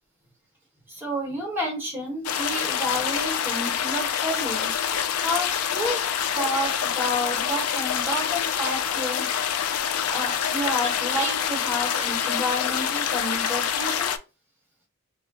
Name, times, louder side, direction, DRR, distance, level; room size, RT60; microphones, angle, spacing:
voice 1, 0.9-4.7 5.2-9.3 10.1-14.1, equal, 10° right, 1.0 m, -30 dB
sound 1, 2.2-14.2, left 8 dB, 80° left, 0.3 m, -26 dB
2.3 x 2.0 x 3.8 m
head